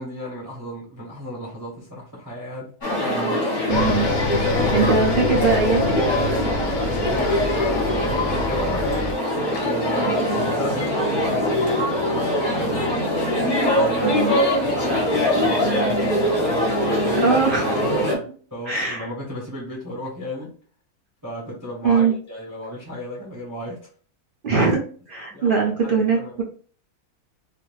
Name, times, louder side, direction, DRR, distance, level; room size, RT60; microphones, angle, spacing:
voice 1, 0.0-2.7 3.0-3.6 4.6-5.4 7.1-13.0 13.7-14.2 14.7-17.3 18.5-20.5 21.2-23.9 25.3-26.4, equal, 20° right, -4 dB, 0.6 m, -34 dB
sound 1, 2.8-18.1, left 1 dB, 35° left, 1.0 m, -22 dB
sound 2, 3.7-9.1, left 3 dB, 65° left, 0.8 m, -27 dB
voice 2, 3.7-6.2 14.0-14.3 17.2-17.7 18.1-18.2 18.7-19.1 21.8-22.1 24.4-24.8 25.1-26.4, right 5 dB, 55° right, -1 dB, 0.6 m, -22 dB
2.5 x 2.4 x 3.1 m, 0.43 s
omnidirectional pair, 1.6 m